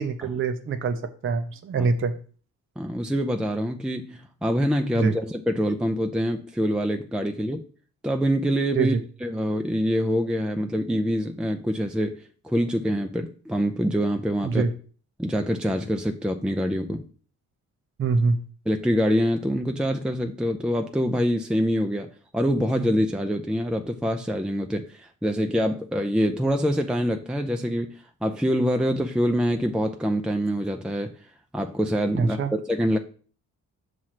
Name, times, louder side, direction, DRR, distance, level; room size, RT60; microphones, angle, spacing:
voice 1, 0.0-2.1 5.0-5.1 8.7-9.0 14.4-14.7 18.0-18.4 32.2-32.5, right 4 dB, 45° right, 0.7 m, -24 dB
voice 2, 2.8-7.6 8.0-9.0 9.2-14.7 15.2-17.0 18.7-31.1 31.5-33.0, equal, 5° right, 0.5 m, -25 dB
5.9 x 3.2 x 5.8 m
cardioid pair, 90°, 30 cm